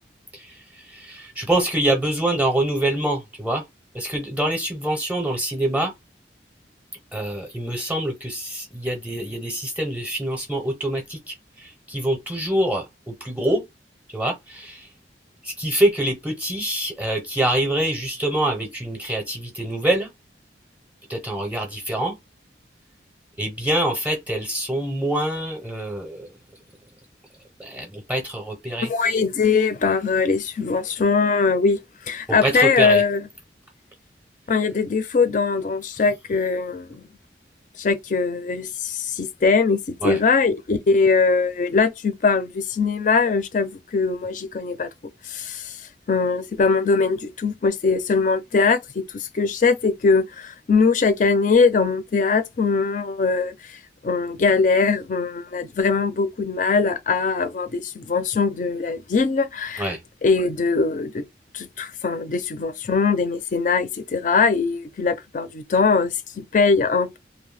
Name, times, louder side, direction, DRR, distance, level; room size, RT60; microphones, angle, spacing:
voice 1, 0.3-3.6 3.9-5.9 7.1-13.6 14.1-14.9 15.4-20.1 21.1-22.1 23.4-26.3 27.6-28.9 32.3-33.0 36.0-36.1 40.0-40.2 59.8-60.0, right 1 dB, 10° right, 0.6 m, -25 dB
voice 2, 28.9-31.8 32.1-33.2 34.5-37.0 37.8-44.9 45.3-45.8 46.1-53.5 54.0-59.8 60.2-61.2 61.5-67.2, left 4 dB, 45° left, 0.4 m, -21 dB
2.6 x 2.1 x 3.2 m
head